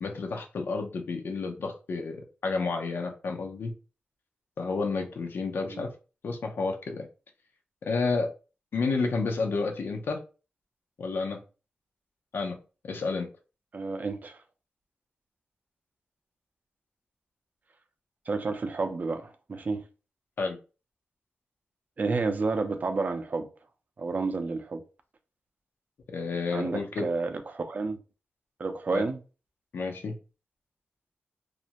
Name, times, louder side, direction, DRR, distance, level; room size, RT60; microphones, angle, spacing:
voice 1, 0.0-3.7 4.6-5.9 6.2-7.1 7.9-8.3 8.7-10.2 11.0-11.4 12.3-12.6 12.8-13.3 20.4-20.6 26.1-27.1 28.9-29.1 29.7-30.2, left 4 dB, 80° left, 0.5 m, -30 dB
voice 2, 13.7-14.4 18.3-19.8 22.0-23.5 24.0-24.8 26.5-28.0 28.6-29.2, right 3 dB, 50° right, 0.4 m, -30 dB
2.4 x 2.1 x 2.8 m
cardioid pair, 70°, 4 cm